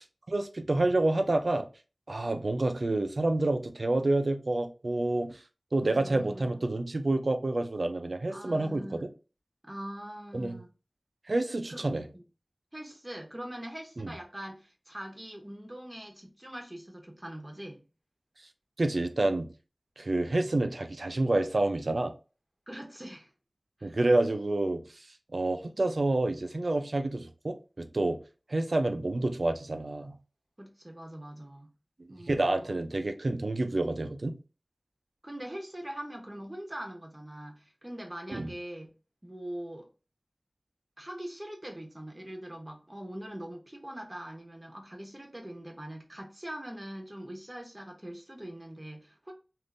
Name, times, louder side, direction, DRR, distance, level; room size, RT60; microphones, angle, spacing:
voice 1, 0.3-1.7 2.1-5.4 5.7-9.0 10.3-10.6 11.3-12.0 14.0-14.1 18.8-19.5 20.0-22.1 23.8-24.8 25.3-28.2 28.5-30.2 32.1-34.3 38.3-38.5, right 2 dB, 75° right, 0.4 m, -28 dB
voice 2, 5.8-6.7 8.3-9.1 9.6-10.7 11.7-12.2 12.7-17.8 22.7-23.3 23.8-24.0 30.6-31.7 32.1-32.8 35.2-38.9 39.2-39.9 41.0-49.3, right 1 dB, 25° right, 0.9 m, -42 dB
3.5 x 2.5 x 2.5 m
wide cardioid pair, 50°, 0 cm